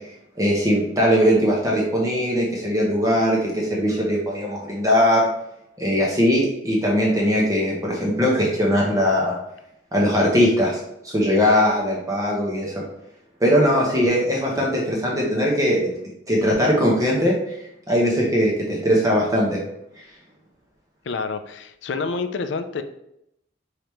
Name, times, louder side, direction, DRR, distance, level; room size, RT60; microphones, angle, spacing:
voice 1, 0.4-5.3 5.8-9.3 9.9-12.8 13.4-15.9 16.3-17.6 17.9-19.6, equal, 20° right, -3 dB, 0.8 m, -20 dB
voice 2, 21.1-22.8, left 4 dB, 75° left, 9 dB, 0.4 m, -28 dB
5.0 x 3.3 x 3.0 m, 0.80 s
head